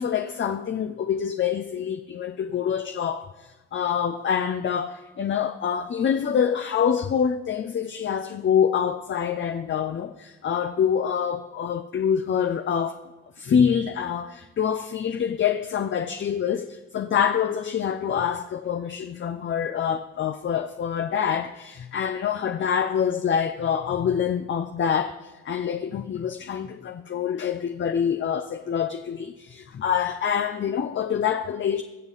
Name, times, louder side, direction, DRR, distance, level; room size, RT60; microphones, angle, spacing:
voice 1, 0.0-13.0 13.4-31.8, left 8 dB, 40° left, 0.6 m, -26 dB
20.5 x 7.2 x 4.1 m
cardioid pair, 90°, 30 cm